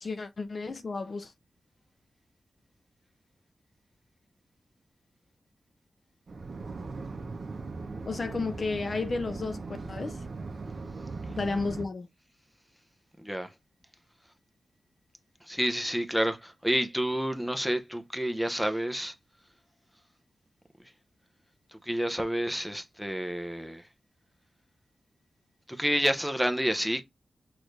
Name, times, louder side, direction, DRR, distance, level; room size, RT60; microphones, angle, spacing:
voice 1, 0.0-1.3 8.0-9.6 9.9-10.2 11.3-12.1, left 3 dB, 45° left, 0.6 m, -32 dB
sound 1, 6.3-11.8, right 3 dB, 55° right, 0.8 m, -39 dB
voice 2, 13.2-13.5 15.4-19.1 21.7-23.9 25.7-27.0, equal, ahead, 0.6 m, -29 dB
6.2 x 2.6 x 3.2 m
wide cardioid pair, 120°, 0 cm